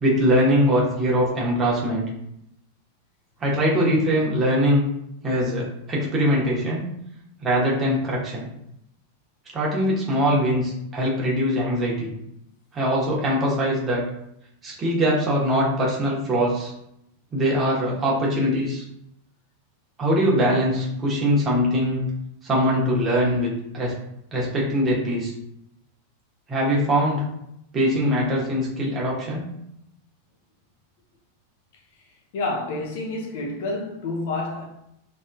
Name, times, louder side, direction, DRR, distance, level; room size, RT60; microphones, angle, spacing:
voice 1, 0.0-2.0 3.4-4.8 5.2-6.9 7.4-8.5 9.5-12.1 12.7-14.0 14.6-16.7 17.3-18.8 20.0-22.0 22.4-23.9 24.3-25.3 26.5-27.2 27.7-29.4, equal, 20° right, 1.0 m, -22 dB
voice 2, 32.3-34.6, left 2 dB, 50° left, 0.6 m, -28 dB
3.3 x 2.6 x 2.2 m
figure-of-eight pair, 90°, 0 cm